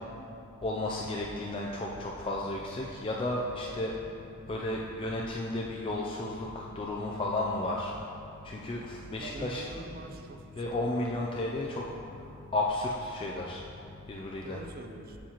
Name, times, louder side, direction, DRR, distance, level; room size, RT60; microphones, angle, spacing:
voice 1, 0.6-3.9 4.5-7.9 8.4-9.7 10.6-11.8 12.5-13.6 14.1-14.6, left 2 dB, 25° left, -2 dB, 0.3 m, -33 dB
voice 2, 9.2-10.7 14.4-15.2, right 2 dB, 40° right, 5 dB, 0.4 m, -44 dB
7.1 x 7.1 x 3.0 m, 2.7 s
head